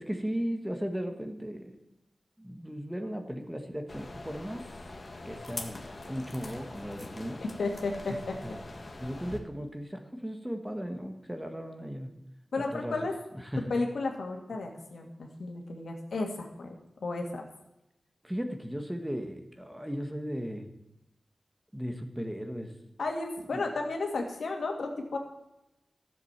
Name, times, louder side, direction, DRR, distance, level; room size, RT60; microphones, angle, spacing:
voice 1, 0.0-1.7 2.4-4.6 5.2-5.8 6.0-7.4 8.4-8.6 9.0-12.1 12.5-13.0 13.5-13.6 18.2-20.7 21.7-22.7 23.5-23.6, equal, 5° right, 5 dB, 1.5 m, -36 dB
sound 1, 3.9-9.4, left 2 dB, 40° left, 1.6 m, -43 dB
voice 2, 7.6-8.4 12.5-13.1 13.7-16.7 17.0-17.4 23.0-25.2, left 3 dB, 85° left, 2 dB, 2.3 m, -33 dB
13.5 x 7.8 x 7.4 m, 0.91 s
wide cardioid pair, 105°, 0 cm